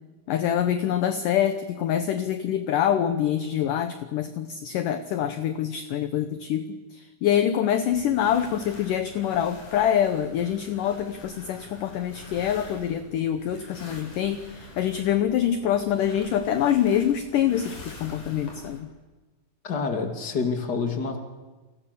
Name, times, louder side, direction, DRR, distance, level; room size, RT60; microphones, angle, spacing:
voice 1, 0.3-18.9, left 10 dB, 70° left, 10 dB, 2.2 m, -25 dB
sound 1, 7.9-18.8, left 1 dB, 50° left, 6.3 m, -45 dB
voice 2, 19.6-21.3, left 4 dB, 30° left, 4 dB, 2.6 m, -27 dB
29.5 x 25.0 x 7.0 m, 1.3 s
omnidirectional pair, 4.6 m